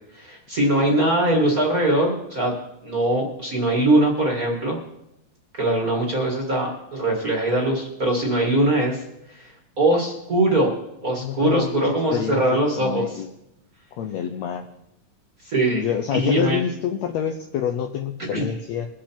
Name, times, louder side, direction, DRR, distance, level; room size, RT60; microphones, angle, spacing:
voice 1, 0.1-2.5 2.8-4.8 5.6-9.0 9.3-10.7 11.0-13.2 15.4-16.6 18.3-18.5, right 1 dB, 35° right, -1 dB, 1.6 m, -22 dB
voice 2, 11.2-12.4 12.8-13.3 14.0-14.6 15.8-18.9, left 8 dB, 75° left, 5 dB, 1.6 m, -27 dB
22.5 x 7.5 x 4.4 m, 0.86 s
omnidirectional pair, 3.8 m